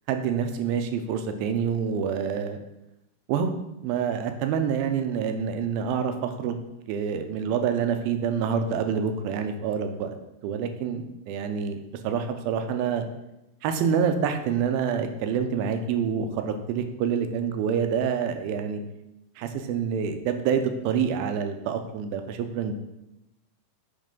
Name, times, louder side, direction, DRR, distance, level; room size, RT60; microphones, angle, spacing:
voice 1, 0.1-2.6 3.3-3.5 3.8-6.6 6.9-10.1 10.4-13.1 13.6-18.8 19.4-22.7, right 7 dB, 85° right, 7 dB, 2.5 m, -27 dB
8.6 x 3.2 x 5.3 m, 0.91 s
omnidirectional pair, 4.2 m